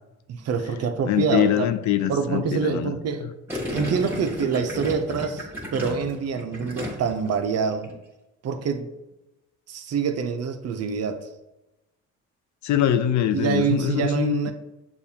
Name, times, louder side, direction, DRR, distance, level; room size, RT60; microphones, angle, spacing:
voice 1, 0.3-1.7 2.1-3.3 3.7-7.9 8.4-8.9 9.7-11.3 13.3-14.5, right 6 dB, 55° right, 7 dB, 0.6 m, -26 dB
voice 2, 1.1-2.9 12.6-14.5, left 10 dB, 70° left, 11 dB, 0.4 m, -23 dB
Gurgling, 3.5-7.3 7.6-7.9, left 1 dB, 5° right, 1.4 m, -33 dB
6.8 x 2.4 x 2.8 m, 0.98 s
cardioid pair, 90°, 30 cm